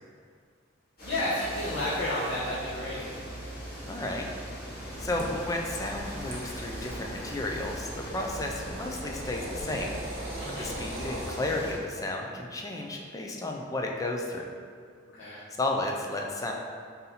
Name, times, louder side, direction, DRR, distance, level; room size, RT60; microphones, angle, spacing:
voice 1, 1.0-3.1 10.4-10.7 15.1-15.4, left 1 dB, 90° left, -8 dB, 0.8 m, -31 dB
sound 1, 1.0-11.7, equal, 50° left, 1.3 m, -40 dB
voice 2, 3.9-4.2 5.0-10.0 10.6-14.5 15.6-16.5, left 2 dB, 15° left, 1 dB, 0.3 m, -33 dB
sound 2, 4.9-11.4, right 1 dB, 80° right, 0.9 m, -40 dB
3.9 x 2.7 x 4.1 m, 2.1 s
head